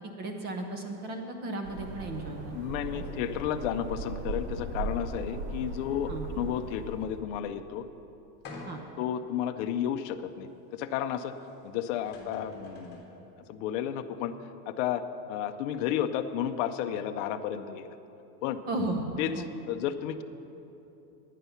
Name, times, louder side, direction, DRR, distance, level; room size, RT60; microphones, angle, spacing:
voice 1, 0.0-2.6 2.9-3.0 6.1-6.2 8.7-8.8 18.7-19.0 19.3-19.5, right 2 dB, 20° right, 4 dB, 0.5 m, -35 dB
Staten Island South Beach Ambiance (facing land), 1.6-7.2, right 2 dB, 85° right, 2.5 m, -38 dB
voice 2, 2.5-6.1 6.4-7.9 9.0-11.4 11.6-13.1 13.5-14.3 14.7-15.0 15.3-17.9 18.4-18.6 19.2-19.3 19.7-20.2, left 10 dB, 50° left, 7 dB, 0.6 m, -32 dB
sound 1, 8.4-9.1 9.7-9.8 11.6-11.7 11.9-13.1, left 2 dB, 20° left, 1.7 m, -45 dB
11.0 x 9.2 x 5.7 m, 3.0 s
supercardioid pair, 155°, 50 cm